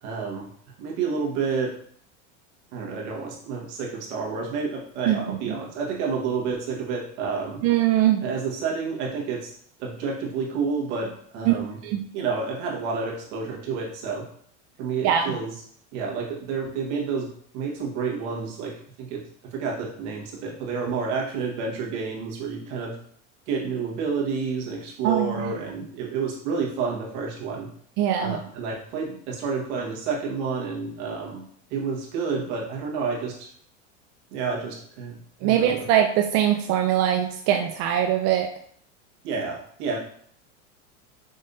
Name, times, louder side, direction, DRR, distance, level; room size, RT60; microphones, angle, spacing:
voice 1, 0.0-0.5 0.8-1.7 2.7-7.6 8.2-9.5 9.8-11.8 12.1-14.2 14.8-15.5 15.9-19.2 19.5-23.0 23.5-27.7 28.2-31.4 31.7-33.5 34.3-35.9 39.2-40.0, right 5 dB, 70° right, -1 dB, 1.6 m, -29 dB
voice 2, 5.1-5.6 7.6-8.2 11.5-11.6 11.8-12.0 15.0-15.3 25.0-25.5 28.0-28.4 35.4-38.5, right 10 dB, 45° right, 4 dB, 0.4 m, -22 dB
5.3 x 3.3 x 2.7 m, 0.62 s
supercardioid pair, 115°, 36 cm